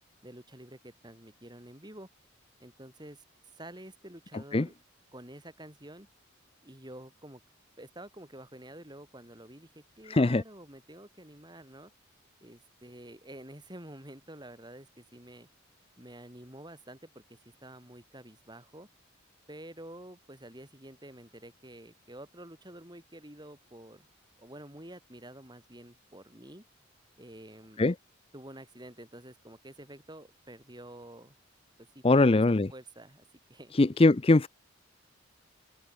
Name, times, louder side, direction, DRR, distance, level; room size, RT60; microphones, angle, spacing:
voice 1, 0.2-2.1 2.6-3.2 3.5-4.7 5.1-6.1 6.6-7.4 7.8-11.9 12.4-15.5 16.0-18.9 19.5-24.1 24.4-26.6 27.2-27.8 28.3-31.4 31.9-32.4 32.7-33.7, right 1 dB, 20° right, 6.2 m, -49 dB
voice 2, 10.1-10.4 27.8-27.9 32.0-32.7 33.8-34.5, left 2 dB, 25° left, 0.5 m, -21 dB
head